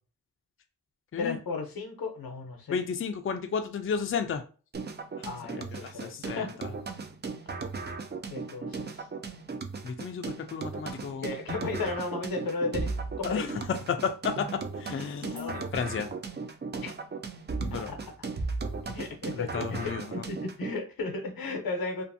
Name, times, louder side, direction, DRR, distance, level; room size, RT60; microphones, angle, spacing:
voice 1, 1.2-2.8 5.2-6.5 8.3-9.1 11.2-13.5 15.3-15.6 16.8-16.9 17.9-18.3 18.9-22.0, left 3 dB, 90° left, 0.7 m, -35 dB
voice 2, 2.7-4.4 5.2-5.3 5.8-6.7 9.8-11.3 13.2-14.5 14.8-16.1 17.6-17.9 19.3-20.2, left 6 dB, 40° left, 0.4 m, -33 dB
sound 1, 4.7-20.7, right 4 dB, 30° right, 0.4 m, -37 dB
2.5 x 2.5 x 2.6 m
cardioid pair, 60°, 35 cm